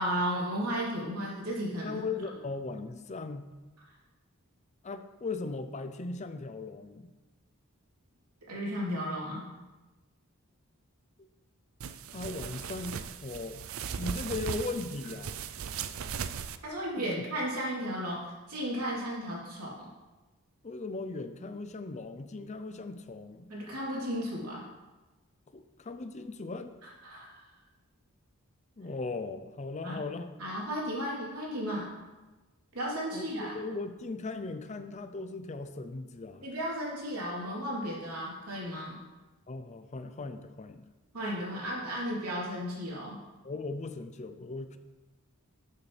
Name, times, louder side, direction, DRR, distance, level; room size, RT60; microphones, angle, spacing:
voice 1, 0.0-2.0 8.5-9.5 16.6-19.9 23.5-24.6 27.0-27.3 29.8-30.0 30.4-31.9 32.7-33.5 36.4-39.0 41.1-43.2, equal, 85° right, -5 dB, 3.2 m, -34 dB
voice 2, 1.8-3.4 4.8-7.1 11.2-11.3 12.1-13.6 14.0-15.4 17.0-17.1 20.6-23.5 25.5-26.8 28.8-30.3 33.1-36.5 39.5-40.9 43.4-44.8, left 3 dB, 30° left, 9 dB, 0.5 m, -38 dB
sound 1, 11.8-16.6, right 7 dB, 65° right, 0.4 m, -38 dB
12.0 x 7.0 x 3.3 m, 1.2 s
head